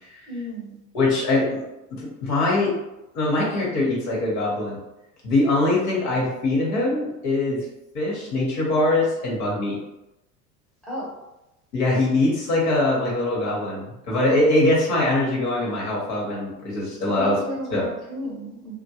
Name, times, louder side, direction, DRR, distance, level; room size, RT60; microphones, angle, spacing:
voice 1, 0.3-0.8 10.9-11.1 17.0-18.8, equal, ahead, -7 dB, 1.0 m, -33 dB
voice 2, 0.9-1.6 1.9-2.7 3.1-4.8 5.2-7.6 7.9-9.8 11.7-13.8 14.1-17.4 17.7-17.9, left 2 dB, 70° left, -4 dB, 1.1 m, -22 dB
2.2 x 2.1 x 2.8 m, 0.93 s
hypercardioid pair, 80°, 47 cm